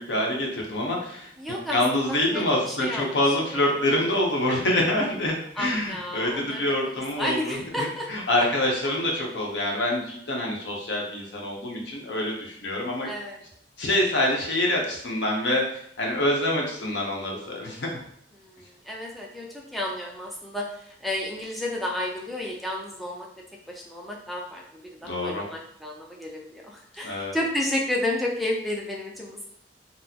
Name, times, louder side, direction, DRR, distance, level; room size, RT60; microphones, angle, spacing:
voice 1, 0.0-1.3 1.7-13.1 13.8-18.0 25.0-25.4 27.0-27.4, left 1 dB, 80° left, -1 dB, 0.8 m, -26 dB
voice 2, 1.4-3.8 4.1-4.3 5.5-8.1 8.4-8.5 8.8-8.9 13.0-13.4 18.3-23.3 23.7-29.5, left 1 dB, ahead, -2 dB, 0.4 m, -32 dB
4.1 x 2.0 x 2.8 m, 0.68 s
head